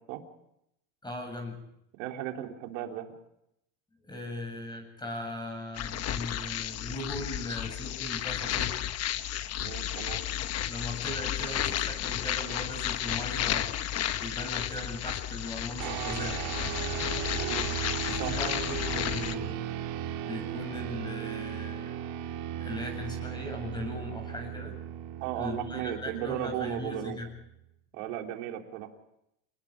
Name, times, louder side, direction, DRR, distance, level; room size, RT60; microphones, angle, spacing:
voice 1, 1.0-1.6 4.1-8.8 10.7-13.8 14.2-17.3 18.1-19.7 20.2-22.0 22.6-24.8 25.4-27.3, left 1 dB, 10° left, 4 dB, 7.7 m, -39 dB
voice 2, 2.0-3.1 9.6-10.2 17.3-17.7 18.2-18.3 25.2-27.2 27.9-28.9, right 11 dB, 80° right, 3 dB, 3.7 m, -35 dB
sound 1, 5.7-19.4, left 11 dB, 40° left, 1.2 m, -33 dB
sound 2, 15.8-27.5, right 10 dB, 65° right, 3.3 m, -37 dB
28.5 x 20.0 x 4.9 m, 0.79 s
supercardioid pair, 135°, 38 cm